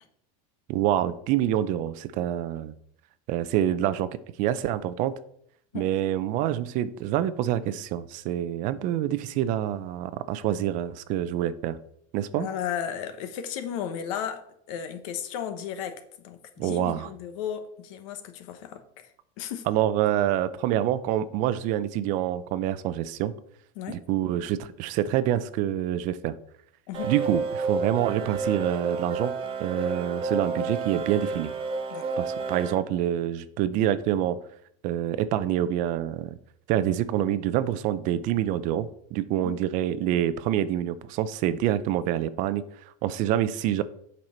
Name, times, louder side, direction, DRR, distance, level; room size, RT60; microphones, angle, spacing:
voice 1, 0.7-2.7 3.3-4.1 4.4-5.2 5.7-11.8 12.1-12.5 16.6-17.1 19.7-23.4 23.9-26.3 27.0-31.5 32.2-34.4 34.8-36.3 36.7-42.6 43.0-43.8, right 11 dB, 45° right, 0.5 m, -26 dB
voice 2, 12.4-14.4 14.7-16.0 16.2-19.1 19.4-19.6 23.8-24.0 26.9-27.1 31.9-32.0 39.4-39.6, left 9 dB, 70° left, 1.1 m, -34 dB
sound 1, 26.9-32.7, right 4 dB, 30° right, 1.0 m, -30 dB
7.9 x 5.5 x 4.3 m
supercardioid pair, 155°, 18 cm